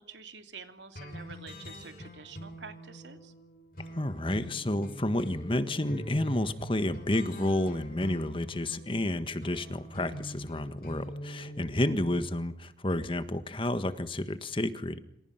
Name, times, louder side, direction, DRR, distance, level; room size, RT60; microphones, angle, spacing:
voice 1, 0.0-3.3 11.9-12.0, right 5 dB, 90° right, 7 dB, 2.8 m, -48 dB
sound 1, 1.0-12.2, equal, 55° left, 7.2 m, -43 dB
voice 2, 3.9-15.0, left 1 dB, 30° left, 11 dB, 1.5 m, -30 dB
27.5 x 26.5 x 5.9 m, 0.75 s
head